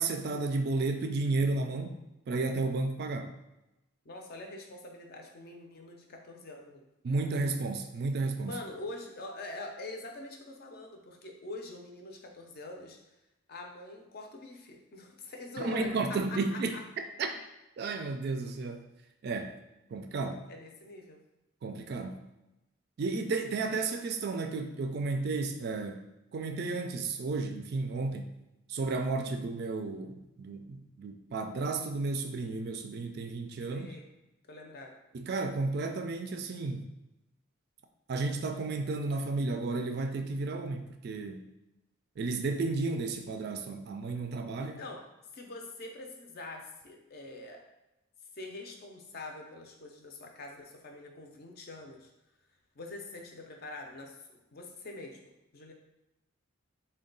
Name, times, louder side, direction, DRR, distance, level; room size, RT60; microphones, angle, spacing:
voice 1, 0.0-2.0 2.3-3.3 7.0-8.5 15.6-16.7 17.2-17.3 17.8-18.8 19.2-19.5 19.9-20.4 21.6-22.2 23.0-26.1 26.3-28.3 28.7-33.9 35.1-36.9 38.1-41.5 42.2-44.8, right 3 dB, 50° right, 5 dB, 0.3 m, -32 dB
voice 2, 4.0-6.9 8.4-13.1 13.5-16.8 20.5-21.2 33.7-34.0 34.5-34.9 44.6-45.1 45.3-47.6 48.3-52.1 52.7-54.1 54.5-55.2 55.5-55.7, left 2 dB, 50° left, 2 dB, 0.5 m, -44 dB
3.7 x 2.2 x 3.8 m, 0.93 s
head